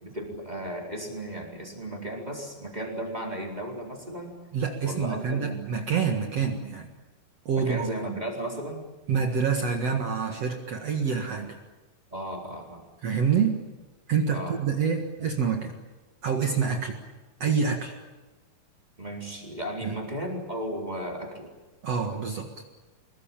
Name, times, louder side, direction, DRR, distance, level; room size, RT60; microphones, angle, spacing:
voice 1, 0.0-4.4 4.8-5.6 7.5-8.8 12.1-12.8 14.3-14.6 19.0-21.5, right 1 dB, 10° right, 0 dB, 4.0 m, -35 dB
voice 2, 4.5-6.9 7.5-7.9 9.1-11.6 13.0-13.6 14.1-15.7 16.2-17.0 17.4-17.9 19.8-20.0 21.8-22.5, right 6 dB, 50° right, 3 dB, 2.4 m, -27 dB
25.5 x 21.5 x 8.9 m, 1.2 s
omnidirectional pair, 4.3 m